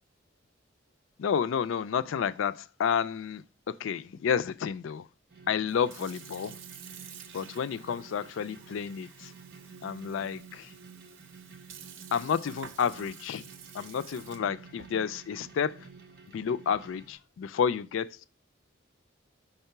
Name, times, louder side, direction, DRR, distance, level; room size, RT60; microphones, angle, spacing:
voice 1, 1.2-5.1 5.5-6.6 7.3-9.3 9.8-10.7 12.1-13.4 13.7-15.9 16.3-18.2, left 7 dB, 90° left, 0.4 m, -30 dB
sound 1, 5.3-17.1, right 5 dB, 55° right, 0.9 m, -51 dB
Sink (filling or washing) / Fill (with liquid), 5.6-17.1, right 7 dB, 90° right, 0.7 m, -51 dB
5.5 x 3.6 x 5.7 m
head